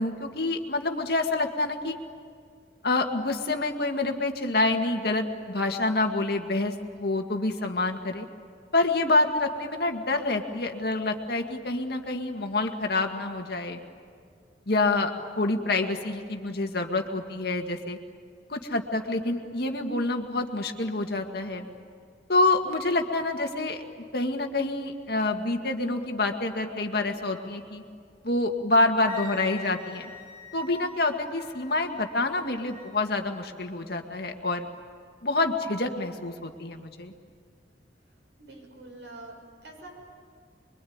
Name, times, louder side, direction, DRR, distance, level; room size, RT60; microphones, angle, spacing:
voice 1, 0.0-2.0 2.8-8.3 8.7-13.8 14.7-15.1 15.4-18.0 18.5-21.7 22.3-23.8 24.1-27.8 28.2-30.1 30.5-34.7 35.2-37.1, left 2 dB, 60° left, 4 dB, 2.0 m, -27 dB
Wind instrument woodwind instrument, 29.1-32.9, left 5 dB, 15° left, 4.2 m, -45 dB
voice 2, 38.4-39.9, right 2 dB, 80° right, 0 dB, 6.9 m, -45 dB
25.0 x 23.5 x 9.6 m, 2.1 s
head